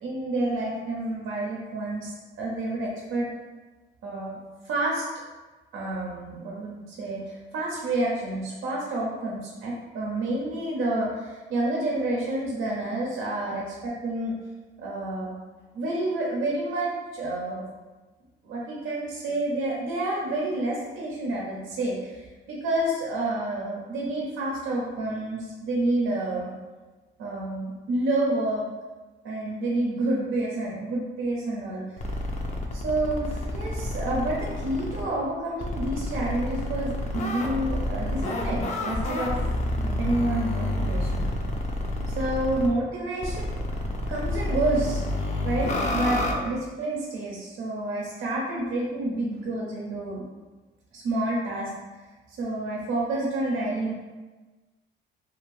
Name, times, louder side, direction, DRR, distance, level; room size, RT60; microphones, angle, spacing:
voice 1, 0.0-3.3 4.0-4.4 4.6-5.0 5.7-14.3 14.8-15.3 15.7-17.6 18.4-26.5 27.2-28.6 29.2-32.1 32.7-39.4 39.8-41.2 42.1-43.5 44.1-50.2 50.9-51.7 52.3-53.9, right 2 dB, 85° right, -3 dB, 0.6 m, -29 dB
sound 1, 32.0-35.0 35.6-42.7 43.2-46.3, left 1 dB, 35° left, 0.5 m, -29 dB
2.5 x 2.4 x 3.1 m, 1.2 s
cardioid pair, 90°, 20 cm